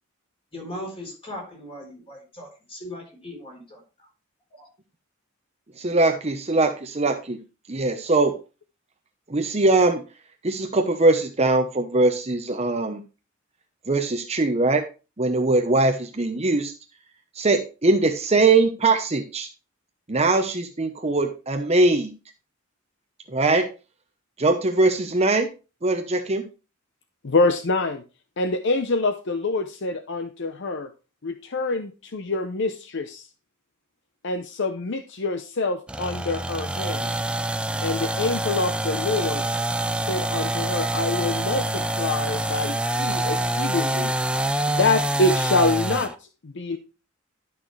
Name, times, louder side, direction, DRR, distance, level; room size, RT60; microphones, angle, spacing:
voice 1, 0.5-3.8, left 1 dB, 25° left, -1 dB, 3.9 m, -38 dB
voice 2, 5.8-7.4 7.7-8.3 9.3-10.0 10.4-13.0 13.9-14.8 15.2-16.7 17.4-19.5 20.1-22.1 23.3-23.7 24.4-25.5 25.8-26.4, right 2 dB, 30° right, 5 dB, 0.9 m, -21 dB
voice 3, 27.2-28.0 28.4-30.9 31.2-33.2 34.2-37.1 37.8-39.4 40.0-44.1 44.7-46.1 46.4-46.8, left 3 dB, 60° left, 8 dB, 0.7 m, -26 dB
sound 1, 35.9-46.1, right 1 dB, 5° right, 0.4 m, -26 dB
11.5 x 6.0 x 3.2 m, 0.31 s
head